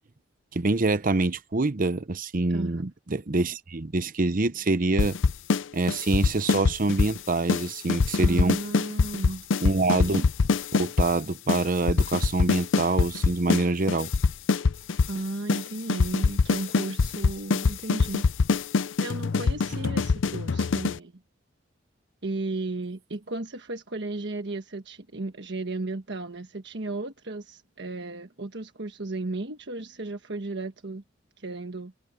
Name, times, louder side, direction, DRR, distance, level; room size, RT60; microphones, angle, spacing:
voice 1, 0.5-5.2 5.7-8.6 9.6-10.3 10.8-14.1, right 2 dB, 45° right, 0.8 m, -25 dB
voice 2, 2.5-2.9 8.2-9.4 15.1-18.3 19.0-21.2 22.2-31.0 31.4-31.9, right 2 dB, 65° right, 1.4 m, -34 dB
sound 1, 5.0-5.6 5.9-7.2 7.5-7.6 7.9-11.1 11.5-11.6 11.9-13.6 13.9-15.2 15.5-15.6 15.9-21.0, left 4 dB, 75° left, 0.5 m, -23 dB
head